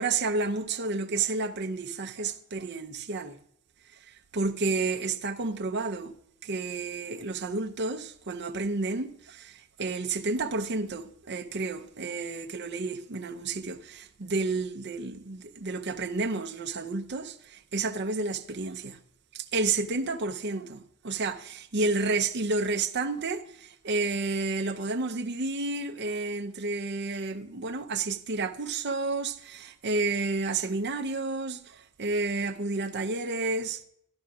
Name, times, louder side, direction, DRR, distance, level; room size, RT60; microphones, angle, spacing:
voice 1, 0.0-3.4 4.0-6.2 6.4-19.0 19.3-33.8, right 3 dB, 55° right, 0.7 m, -31 dB
16.0 x 11.5 x 2.4 m
head